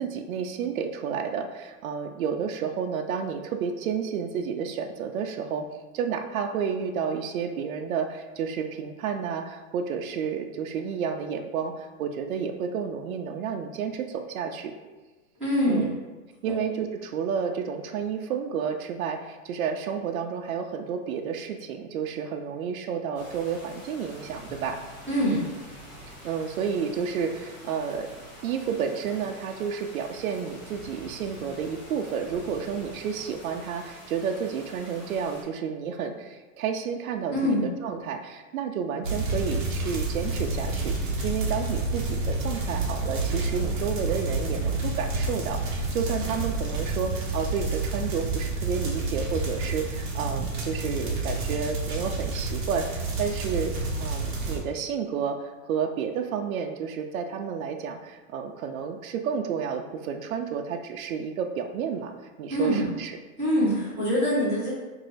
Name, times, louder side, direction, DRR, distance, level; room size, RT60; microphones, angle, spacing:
voice 1, 0.0-5.7 5.9-14.7 15.7-15.9 16.4-24.8 26.1-28.1 28.4-37.5 37.8-53.7 54.0-62.1 62.4-63.1, right 7 dB, 80° right, 5 dB, 0.5 m, -31 dB
voice 2, 15.4-15.9 16.4-16.5 25.1-25.4 37.3-37.6 62.5-62.9 63.4-64.7, equal, ahead, -22 dB, 0.5 m, -24 dB
sound 1, 23.1-35.4, equal, 40° left, 1.5 m, -46 dB
sound 2, 39.0-54.6, right 2 dB, 35° right, 0.7 m, -29 dB
3.1 x 2.7 x 3.9 m, 1.2 s
supercardioid pair, 175°, 42 cm